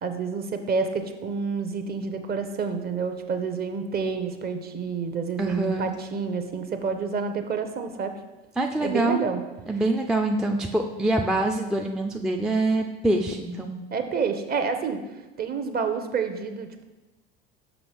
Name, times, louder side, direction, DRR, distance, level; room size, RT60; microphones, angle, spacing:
voice 1, 0.0-8.1 8.8-9.4 13.9-15.0 15.4-16.8, right 5 dB, 30° right, 7 dB, 0.8 m, -28 dB
voice 2, 5.4-5.9 8.6-9.2 9.7-13.7, right 2 dB, ahead, 2 dB, 0.4 m, -25 dB
6.1 x 5.5 x 3.4 m, 1.1 s
hypercardioid pair, 75°, 29 cm